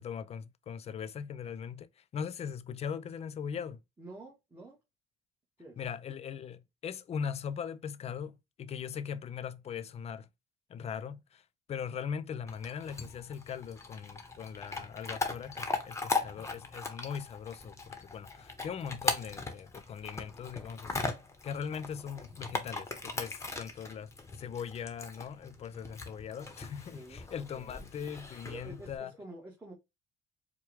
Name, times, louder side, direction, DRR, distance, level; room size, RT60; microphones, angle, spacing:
voice 1, 0.0-1.9 2.1-3.8 5.8-10.3 10.7-11.4 11.7-21.1 21.4-24.1 24.4-29.1, left 7 dB, 40° left, 0.4 m, -40 dB
voice 2, 4.0-4.8 5.6-5.8 26.9-27.9 28.4-29.7, right 2 dB, 15° right, 1.2 m, -48 dB
Chewing mastication / Dog, 12.5-29.0, left 3 dB, 15° left, 0.9 m, -39 dB
4.5 x 2.2 x 3.3 m
cardioid pair, 110°, 17 cm